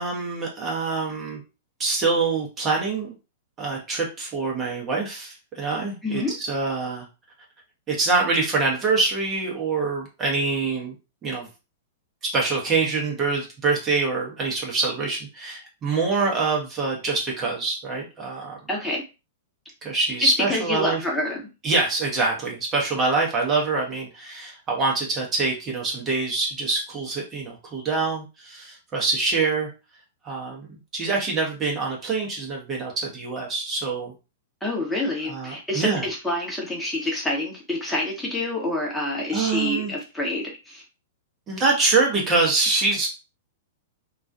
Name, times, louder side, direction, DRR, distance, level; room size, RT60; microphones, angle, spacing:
voice 1, 0.0-1.4 1.8-3.1 3.6-7.1 7.9-10.9 11.2-11.5 12.3-18.6 19.8-21.0 21.6-29.7 30.2-30.7 30.9-34.1 35.3-36.0 39.3-39.9 41.5-43.1, right 3 dB, 25° right, -2 dB, 0.8 m, -25 dB
voice 2, 6.0-6.3 18.7-19.0 20.5-21.4 34.6-40.8, left 1 dB, 5° left, -2 dB, 0.9 m, -27 dB
2.4 x 2.2 x 2.5 m, 0.29 s
figure-of-eight pair, 105°, 0 cm